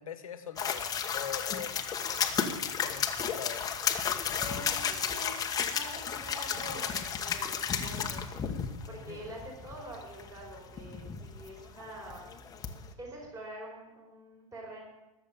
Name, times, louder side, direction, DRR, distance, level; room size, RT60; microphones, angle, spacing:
voice 1, 0.0-3.7 8.9-9.3, left 8 dB, 85° left, 8 dB, 1.6 m, -43 dB
sound 1, 0.6-12.9, left 7 dB, 20° left, 1.3 m, -33 dB
voice 2, 4.4-12.3 13.0-14.9, right 1 dB, 20° right, -1 dB, 4.7 m, -46 dB
20.0 x 7.5 x 7.1 m, 1.0 s
hypercardioid pair, 120°, 17 cm